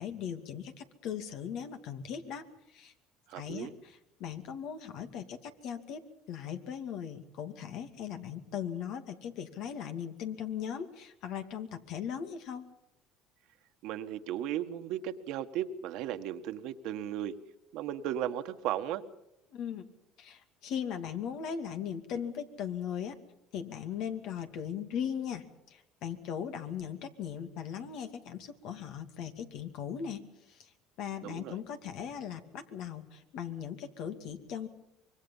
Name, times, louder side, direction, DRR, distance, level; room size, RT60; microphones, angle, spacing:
voice 1, 0.0-2.9 3.3-12.7 19.5-19.8 20.2-23.1 23.5-30.7 31.0-34.7, left 8 dB, 65° left, 7 dB, 2.4 m, -39 dB
voice 2, 3.3-3.7 13.8-17.3 17.7-19.0 31.2-31.6, right 11 dB, 70° right, 8 dB, 1.5 m, -35 dB
25.0 x 23.0 x 5.6 m, 0.84 s
supercardioid pair, 105°, 0 cm